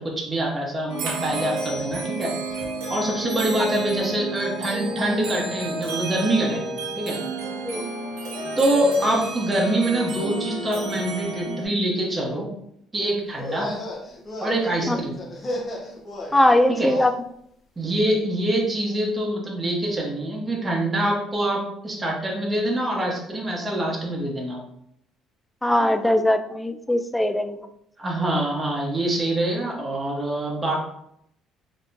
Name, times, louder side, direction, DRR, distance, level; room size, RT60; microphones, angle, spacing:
voice 1, 0.0-2.3 2.9-7.2 8.6-12.5 12.9-13.7 14.4-15.2 16.7-16.9 17.8-24.6 28.0-30.8, right 1 dB, 20° right, -3 dB, 1.1 m, -25 dB
sound 1, 0.9-11.7, right 2 dB, 85° right, 0.9 m, -31 dB
sound 2, 13.3-17.1, left 1 dB, 30° left, 1.2 m, -34 dB
voice 2, 16.3-17.1 25.6-27.6, left 1 dB, 10° left, 8 dB, 0.4 m, -20 dB
4.1 x 3.0 x 2.6 m, 0.71 s
supercardioid pair, 85°, 0 cm